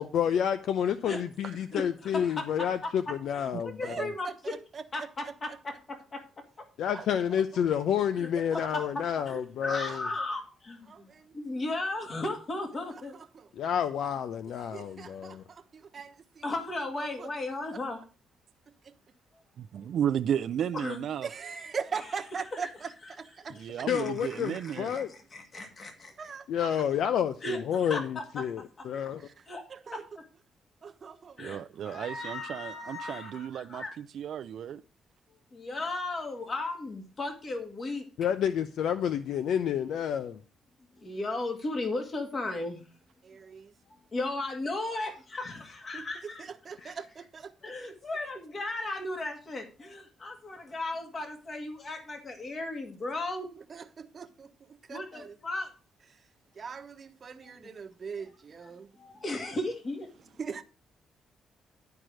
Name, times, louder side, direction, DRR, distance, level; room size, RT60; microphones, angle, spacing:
voice 1, 0.0-4.1 6.8-10.1 13.6-15.4 23.9-25.1 26.5-29.2 38.2-40.4, left 9 dB, 75° left, 0.6 m, -29 dB
voice 2, 1.7-4.5 4.9-5.7 6.1-6.2 8.2-8.8 9.3-13.1 16.4-18.0 19.3-19.4 20.7-21.0 22.0-22.2 22.5-22.9 23.9-26.4 27.4-28.0 29.5-29.6 29.9-30.0 31.4-33.9 35.5-38.3 41.0-42.9 43.9-46.5 46.8-47.0 47.6-53.5 54.9-55.7 57.4-57.7 58.6-58.7 59.0-60.1, left 2 dB, 35° left, 2.0 m, -36 dB
voice 3, 3.8-4.8 6.9-7.0 8.3-8.6 10.9-11.3 13.3-13.5 14.7-16.4 17.2-17.3 17.7-17.8 18.8-18.9 21.2-23.9 24.9-25.0 26.2-26.5 29.3-29.4 29.7-30.0 30.8-32.0 43.2-43.7 45.9-46.1 46.4-47.5 53.7-54.5 54.9-55.3 56.5-58.9 60.4-60.6, right 6 dB, 40° right, 1.1 m, -41 dB
voice 4, 19.6-21.3 23.5-24.9 31.4-34.8, right 9 dB, 65° right, 0.4 m, -33 dB
12.0 x 4.7 x 6.2 m
cardioid pair, 105°, 0 cm